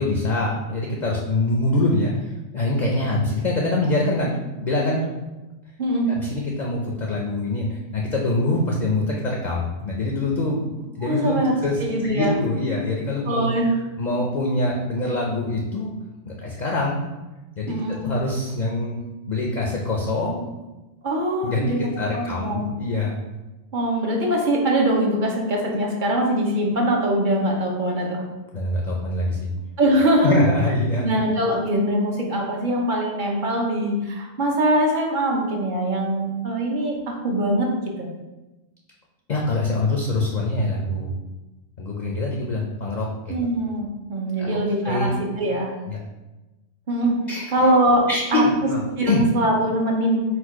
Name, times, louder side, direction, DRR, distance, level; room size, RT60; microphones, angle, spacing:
voice 1, 0.0-5.1 6.1-11.4 11.6-13.5 14.0-15.9 16.3-17.0 17.6-19.0 19.3-20.4 21.4-23.1 28.5-29.5 30.2-31.1 39.3-41.1 41.8-43.3 44.4-44.6 44.8-45.1 45.9-46.0 47.3-47.7 48.1-48.8 49.1-49.2, left 2 dB, 50° left, -2 dB, 0.5 m, -24 dB
voice 2, 5.8-6.1 11.0-11.5 11.8-12.3 13.3-13.8 17.7-18.1 21.0-21.8 22.1-22.7 23.7-28.2 29.8-30.5 31.0-37.7 38.0-38.1 43.3-45.7 46.9-47.2 47.5-48.0 48.3-48.4 49.0-50.2, right 1 dB, 50° right, 0 dB, 0.7 m, -22 dB
4.3 x 2.3 x 4.6 m, 1.1 s
omnidirectional pair, 1.2 m